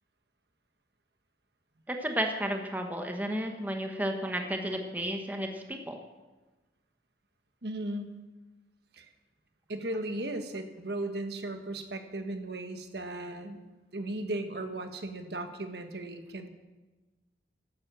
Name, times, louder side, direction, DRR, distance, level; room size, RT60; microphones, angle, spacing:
voice 1, 1.9-6.0, equal, 10° right, 3 dB, 1.3 m, -32 dB
voice 2, 7.6-8.2 9.0-9.1 9.7-13.6 13.9-16.5, right 1 dB, 65° right, 6 dB, 1.5 m, -36 dB
12.5 x 12.0 x 7.6 m, 1.2 s
head